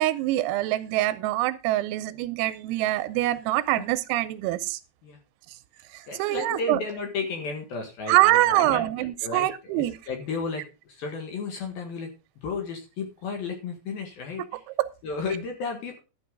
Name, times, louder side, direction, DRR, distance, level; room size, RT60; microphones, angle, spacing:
voice 1, 0.0-4.8 5.9-6.8 8.1-10.0 14.4-14.9, right 16 dB, 85° right, 3.4 m, -24 dB
voice 2, 6.1-9.5 9.7-10.6 10.9-12.1 12.4-14.4 15.0-16.0, left 4 dB, 60° left, 2.9 m, -33 dB
12.5 x 8.6 x 3.8 m
omnidirectional pair, 6.0 m